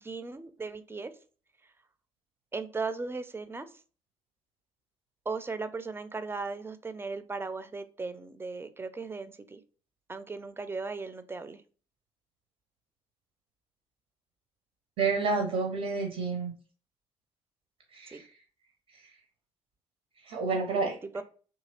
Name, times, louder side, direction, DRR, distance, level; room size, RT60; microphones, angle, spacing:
voice 1, 0.0-1.1 2.5-3.7 5.3-9.6 10.1-11.6 18.1-18.2 21.1-21.2, right 4 dB, 15° right, 12 dB, 0.4 m, -37 dB
voice 2, 15.0-16.5 17.9-18.3 20.2-21.0, right 4 dB, 65° right, 2 dB, 0.6 m, -29 dB
2.8 x 2.7 x 2.8 m, 0.39 s
figure-of-eight pair, 40°, 15 cm